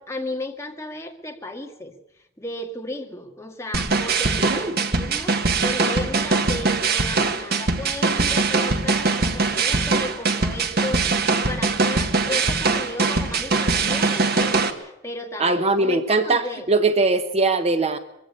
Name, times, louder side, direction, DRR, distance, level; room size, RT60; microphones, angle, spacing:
voice 1, 0.0-2.0 2.4-16.7, left 1 dB, 15° left, 3 dB, 2.0 m, -34 dB
sound 1, 3.7-14.7, right 3 dB, 55° right, 1.6 m, -22 dB
voice 2, 4.4-4.8 15.4-18.0, right 3 dB, 35° right, 10 dB, 0.9 m, -21 dB
23.0 x 15.5 x 8.6 m, 0.85 s
head